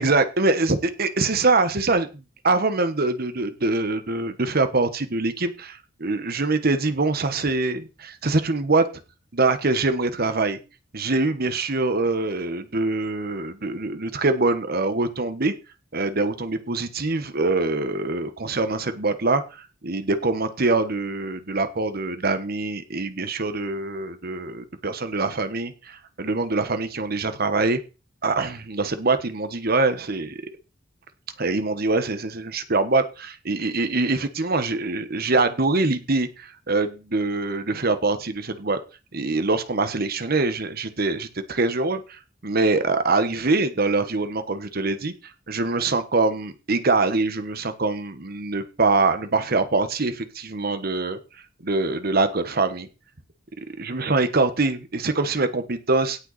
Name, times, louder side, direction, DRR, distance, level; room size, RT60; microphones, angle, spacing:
voice 1, 0.0-2.1 2.4-8.9 9.3-10.6 10.9-15.5 15.9-27.8 28.2-30.4 31.4-38.8 39.1-45.1 45.5-51.2 51.6-52.9 53.8-56.2, right 3 dB, 55° right, 10 dB, 1.3 m, -24 dB
17.0 x 5.8 x 4.2 m, 0.31 s
head